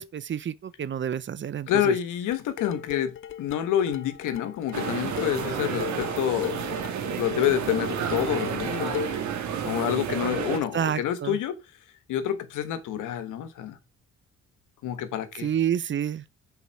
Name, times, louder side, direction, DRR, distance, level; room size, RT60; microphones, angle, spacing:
voice 1, 0.0-2.0 10.7-11.4 15.4-16.2, right 9 dB, 40° right, 0.6 m, -29 dB
voice 2, 1.7-6.7 7.2-9.2 9.6-11.5 12.1-13.8 14.8-15.5, left 10 dB, 85° left, 1.2 m, -28 dB
sound 1, 2.3-9.3, left 10 dB, 45° left, 0.4 m, -35 dB
sound 2, 4.7-10.6, right 8 dB, 70° right, 1.5 m, -31 dB
7.1 x 4.5 x 5.7 m
cardioid pair, 90°, 30 cm